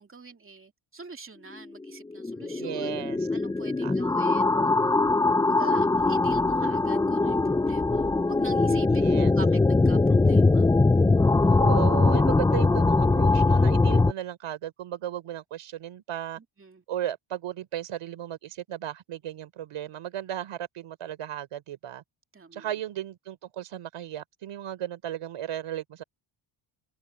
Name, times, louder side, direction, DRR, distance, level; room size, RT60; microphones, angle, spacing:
voice 1, 0.0-2.9 3.3-5.1 5.4-10.7 11.5-11.8 16.4-16.8 22.3-22.7, right 5 dB, 25° right, 2.7 m, -45 dB
sound 1, 1.9-14.1, left 3 dB, 10° left, 0.3 m, -22 dB
voice 2, 2.6-3.3 3.8-4.0 8.9-9.3 11.5-16.4 16.9-22.0 22.5-26.0, right 11 dB, 85° right, 4.1 m, -35 dB
cardioid pair, 100°, 50 cm